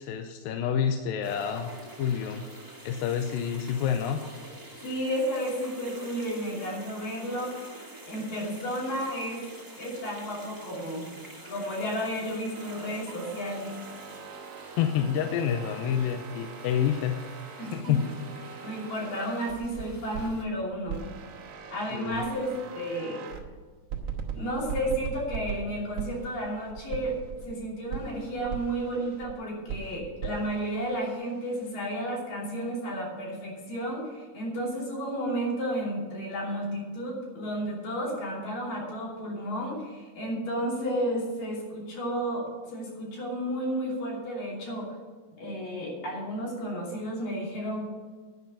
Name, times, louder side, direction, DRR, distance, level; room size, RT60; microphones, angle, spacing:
voice 1, 0.0-2.5 2.8-4.2 14.8-17.2 17.7-18.0 21.9-22.2, left 8 dB, 80° left, 5 dB, 2.3 m, -28 dB
sound 1, 1.2-20.4, right 2 dB, 20° right, 0.5 m, -47 dB
voice 2, 4.8-7.6 8.1-9.4 9.8-11.1 11.5-13.7 17.6-18.1 18.6-21.0 21.7-23.3 24.3-27.1 27.4-44.9 45.4-47.8, equal, 65° left, -4 dB, 4.5 m, -32 dB
sound 2, 12.5-20.4 20.9-23.5 23.9-27.5 27.9-29.3 29.7-31.7, right 7 dB, 80° right, 1.2 m, -40 dB
10.5 x 6.0 x 8.7 m, 1.4 s
omnidirectional pair, 4.3 m